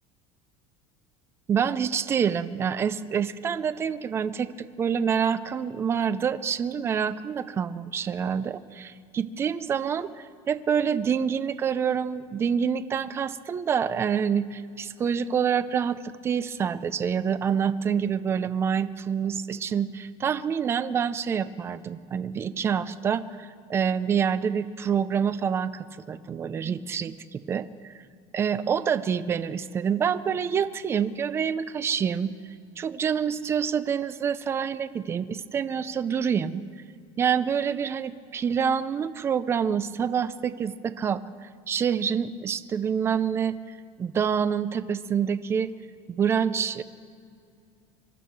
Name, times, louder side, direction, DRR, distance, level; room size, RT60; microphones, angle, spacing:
voice 1, 1.5-27.9 28.3-32.3 32.8-36.6 37.2-45.7 46.1-46.8, right 7 dB, 20° right, 14 dB, 0.4 m, -27 dB
24.5 x 12.0 x 4.6 m, 2.4 s
cardioid pair, 170°, 14 cm